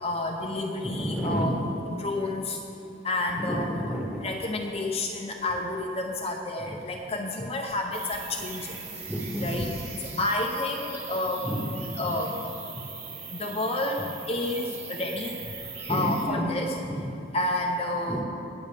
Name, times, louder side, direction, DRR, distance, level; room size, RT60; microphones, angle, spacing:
voice 1, 0.0-2.6 3.0-3.8 4.2-8.7 9.4-9.7 10.2-11.4 12.0-12.3 13.3-15.4 15.9-16.8 17.3-18.2, left 2 dB, 30° left, 0 dB, 0.7 m, -30 dB
voice 2, 0.8-1.7 3.4-4.3 9.1-9.7 10.1-10.2 11.4-12.1 15.9-17.2 18.1-18.2, right 1 dB, 5° right, -1 dB, 1.4 m, -31 dB
sound 1, 7.9-16.3, right 5 dB, 35° right, 2.3 m, -40 dB
20.5 x 7.9 x 3.5 m, 2.8 s
head